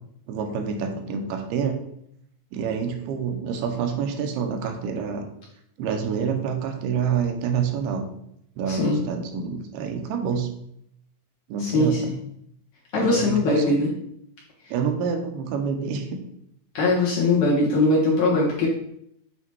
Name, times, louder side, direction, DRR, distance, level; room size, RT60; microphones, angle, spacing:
voice 1, 0.3-1.8 2.5-5.3 5.8-8.1 8.6-10.5 11.5-12.1 12.9-13.6 14.7-16.2, right 6 dB, 85° right, 4 dB, 2.8 m, -27 dB
voice 2, 8.7-9.0 11.6-12.2 12.9-13.9 16.7-18.7, left 2 dB, 60° left, -5 dB, 2.1 m, -21 dB
8.4 x 3.0 x 4.6 m, 0.73 s
omnidirectional pair, 4.5 m